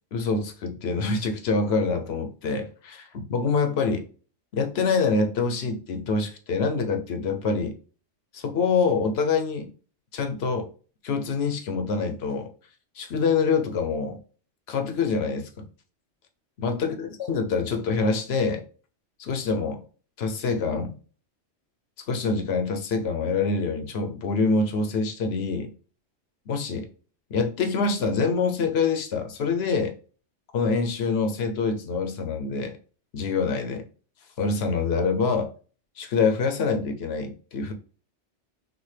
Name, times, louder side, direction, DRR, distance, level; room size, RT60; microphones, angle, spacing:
voice 1, 0.1-4.0 4.5-7.8 8.3-9.7 10.1-10.7 11.0-12.5 13.0-14.2 14.7-15.7 16.6-18.6 19.2-19.8 20.2-21.0 22.1-25.7 26.5-26.9 27.3-29.9 30.5-32.8 33.1-33.9 34.4-35.5 36.0-37.7, left 4 dB, 65° left, 1.0 m, -25 dB
6.0 x 2.4 x 3.3 m
omnidirectional pair, 1.2 m